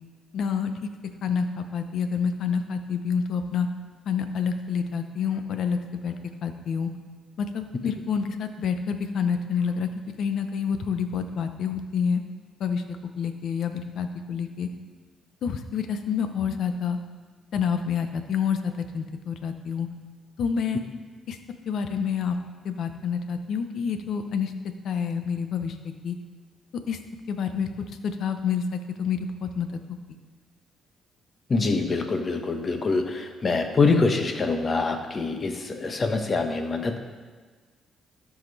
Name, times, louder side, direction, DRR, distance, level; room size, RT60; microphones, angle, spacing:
voice 1, 0.3-0.7 1.2-3.7 4.1-6.1 6.4-6.9 7.4-9.9 10.2-12.2 12.6-12.8 13.2-14.7 15.4-17.0 17.5-19.9 20.4-20.8 21.3-21.4 21.7-22.4 22.6-24.5 24.8-26.2 26.9-27.0 27.3-27.7 28.0-29.8, left 6 dB, 70° left, 8 dB, 0.8 m, -28 dB
voice 2, 31.5-37.0, left 3 dB, 35° left, 6 dB, 1.0 m, -25 dB
13.0 x 5.1 x 4.1 m, 1.4 s
cardioid pair, 90°, 0 cm